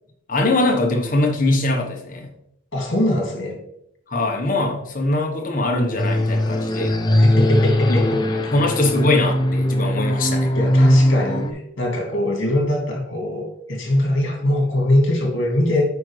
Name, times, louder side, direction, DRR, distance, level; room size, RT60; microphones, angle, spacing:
voice 1, 0.3-2.3 4.1-7.0 8.5-10.5, left 2 dB, 40° left, 1 dB, 1.2 m, -21 dB
voice 2, 2.7-3.6 7.1-8.7 10.5-15.8, left 1 dB, 60° left, 0 dB, 2.4 m, -22 dB
sound 1, 6.0-11.5, left 1 dB, 20° left, 0.5 m, -19 dB
8.4 x 5.1 x 3.3 m, 0.73 s
head